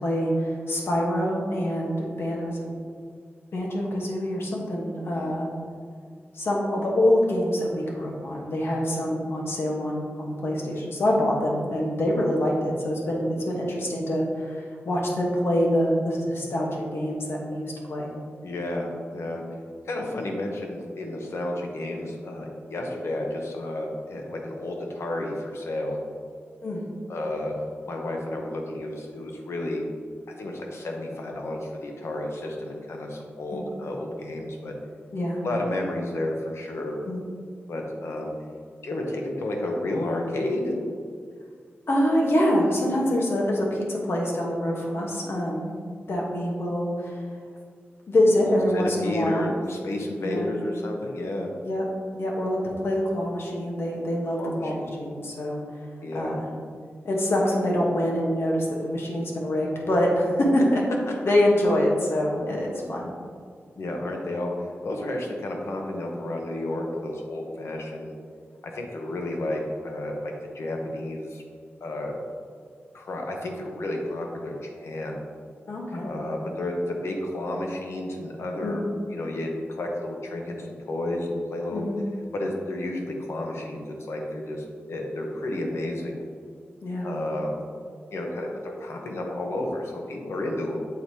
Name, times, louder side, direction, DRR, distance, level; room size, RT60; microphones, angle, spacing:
voice 1, 0.0-2.7 3.5-5.5 6.3-18.1 26.6-26.8 33.5-33.6 35.1-35.4 37.1-37.2 41.9-45.8 46.1-47.2 48.1-49.5 50.1-50.5 51.6-51.9 52.1-55.6 56.1-56.5 57.0-60.8 61.2-63.1 75.7-76.1 78.6-78.8 81.7-82.0 86.8-87.1, left 1 dB, 65° left, -2 dB, 1.1 m, -25 dB
voice 2, 18.4-19.4 19.8-26.0 27.1-27.6 27.9-29.8 30.4-34.7 35.4-37.0 37.7-38.3 38.8-40.8 48.5-51.5 54.4-54.9 56.0-56.4 60.6-60.7 63.8-68.2 68.6-71.4 71.8-72.2 72.9-75.2 75.9-78.8 79.1-81.9 82.3-86.2 87.0-87.5 88.1-90.8, left 1 dB, 80° left, 1 dB, 0.8 m, -31 dB
7.2 x 4.6 x 2.8 m, 2.1 s
wide cardioid pair, 130°, 5 cm